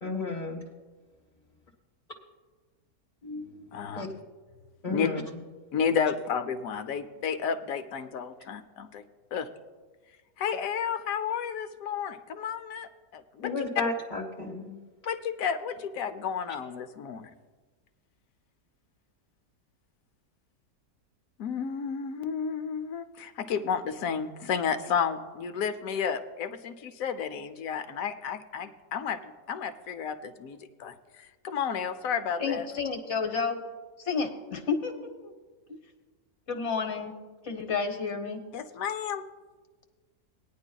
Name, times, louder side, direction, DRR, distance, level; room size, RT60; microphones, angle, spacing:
voice 1, 0.0-0.6 3.2-4.1 4.8-5.2 13.4-14.8, left 3 dB, 30° left, -2 dB, 0.9 m, -33 dB
voice 2, 3.7-4.1 4.9-5.1 5.7-9.0 9.3-9.5 10.4-13.5 15.0-17.3 21.4-32.7 38.5-39.2, left 7 dB, 65° left, 10 dB, 1.0 m, -32 dB
voice 3, 32.4-33.6 34.0-34.9 35.2-35.3 35.7-35.8 36.5-37.1 37.4-38.4, left 5 dB, 50° left, 6 dB, 1.3 m, -30 dB
19.5 x 10.5 x 2.3 m, 1.3 s
omnidirectional pair, 1.7 m